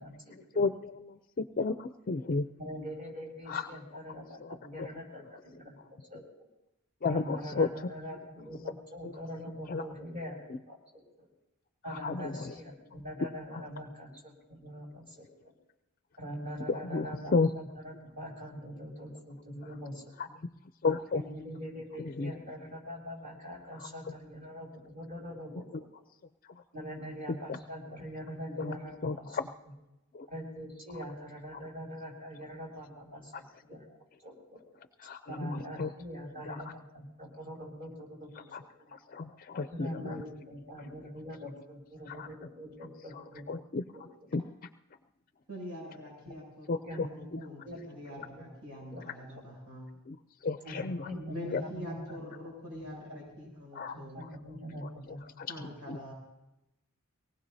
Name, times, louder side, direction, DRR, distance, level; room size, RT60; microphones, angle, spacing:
voice 1, 0.0-0.6 2.6-5.8 6.1-6.2 7.1-11.3 11.8-15.5 16.2-20.1 21.1-25.7 26.7-29.4 30.3-33.9 34.2-34.6 35.3-38.4 39.7-43.6 43.9-44.0 46.2-46.4 46.8-47.8 48.1-49.0 50.6-52.2 52.7-53.5 53.9-55.2 55.5-55.7, equal, 40° right, -3 dB, 7.0 m, -43 dB
voice 2, 0.6-2.5 3.5-3.7 4.1-5.0 7.0-7.9 9.0-9.1 9.7-9.8 11.9-12.5 13.2-13.6 16.7-17.5 20.2-20.5 20.8-21.2 22.0-22.3 23.8-24.1 25.7-25.8 27.5-27.6 28.6-28.8 29.0-29.5 30.1-30.3 31.5-31.6 35.0-35.9 36.5-36.6 38.5-38.6 38.9-40.2 42.1-42.3 43.1-44.0 44.3-44.4 46.7-47.1 47.3-47.4 50.1-50.2 50.4-51.1 51.5-51.6 53.7-54.3 54.8-54.9 55.4-55.6 55.9-56.0, left 4 dB, 40° left, 10 dB, 0.5 m, -33 dB
voice 3, 45.5-49.9 51.3-54.3 55.5-56.1, left 1 dB, 80° right, -2 dB, 7.4 m, -45 dB
24.0 x 19.0 x 2.7 m, 0.92 s
head